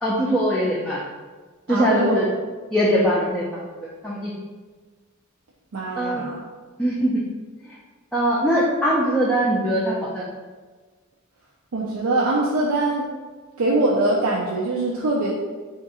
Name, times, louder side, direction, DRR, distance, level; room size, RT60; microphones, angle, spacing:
voice 1, 0.0-1.0 1.7-2.2 2.7-3.4 4.0-4.3 6.0-6.2 6.8-7.2 8.1-10.2, equal, 5° left, -6 dB, 0.4 m, -21 dB
voice 2, 1.7-2.3 5.7-6.4 11.7-13.1 13.6-15.3, right 2 dB, 75° right, -4 dB, 0.5 m, -22 dB
3.5 x 2.5 x 4.1 m, 1.4 s
head